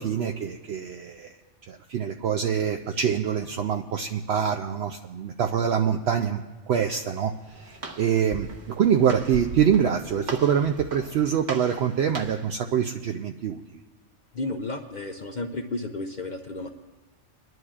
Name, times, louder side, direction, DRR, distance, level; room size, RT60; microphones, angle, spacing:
voice 1, 0.0-1.4 1.7-8.5 8.8-13.6, right 8 dB, 65° right, 4 dB, 0.8 m, -25 dB
Walk footsteps, 7.2-12.5, right 2 dB, 40° right, 1.2 m, -39 dB
voice 2, 14.3-16.7, left 2 dB, 50° left, 5 dB, 0.6 m, -32 dB
28.5 x 11.0 x 2.4 m, 1.3 s
omnidirectional pair, 1.3 m